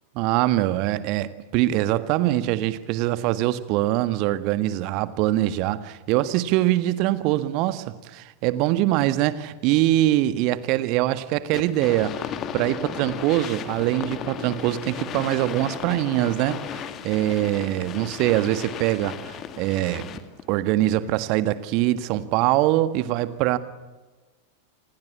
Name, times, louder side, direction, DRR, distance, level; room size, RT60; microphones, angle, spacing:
voice 1, 0.1-20.1 20.5-23.6, right 15 dB, 45° right, 13 dB, 1.6 m, -23 dB
sound 1, 11.5-20.4, left 8 dB, 30° left, 2.1 m, -35 dB
29.0 x 20.5 x 8.5 m, 1.3 s
figure-of-eight pair, 90°, 0 cm